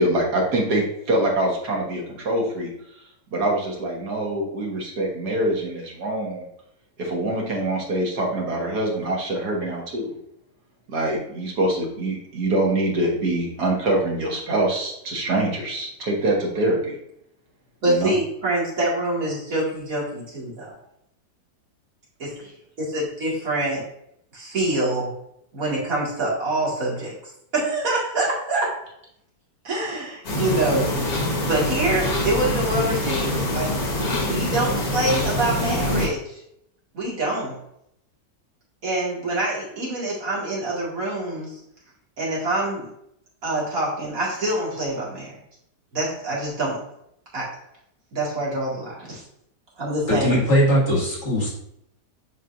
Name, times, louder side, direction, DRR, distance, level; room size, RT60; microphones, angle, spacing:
voice 1, 0.0-2.7 3.3-6.4 7.0-10.1 10.9-17.0 17.9-18.1, right 1 dB, 70° right, -1 dB, 2.0 m, -24 dB
voice 2, 17.8-20.7 22.2-22.5 22.8-23.8 24.3-25.1 25.5-27.2 27.5-28.7 29.6-30.9 31.4-36.4 36.9-37.5 38.8-41.6 42.2-42.9 43.4-45.3 45.9-46.8 47.3-47.5 48.1-49.2 49.8-50.4, right 2 dB, 55° right, -5 dB, 2.5 m, -25 dB
sound 1, 30.2-36.1, left 1 dB, 60° left, 1.9 m, -24 dB
voice 3, 50.1-51.5, equal, 40° left, -4 dB, 2.4 m, -20 dB
7.5 x 5.0 x 2.6 m, 0.76 s
omnidirectional pair, 1.8 m